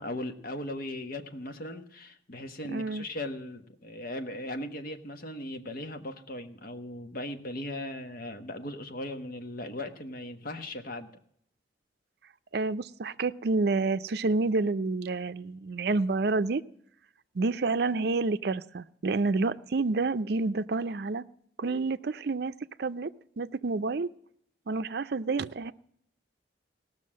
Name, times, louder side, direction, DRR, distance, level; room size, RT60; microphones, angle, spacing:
voice 1, 0.0-11.1, left 1 dB, 55° left, 7 dB, 1.2 m, -38 dB
voice 2, 2.7-3.0 12.5-16.6 17.3-21.2 21.6-22.5 22.8-24.1 24.7-25.7, right 3 dB, 60° right, 12 dB, 0.5 m, -29 dB
17.5 x 6.3 x 7.4 m, 0.68 s
head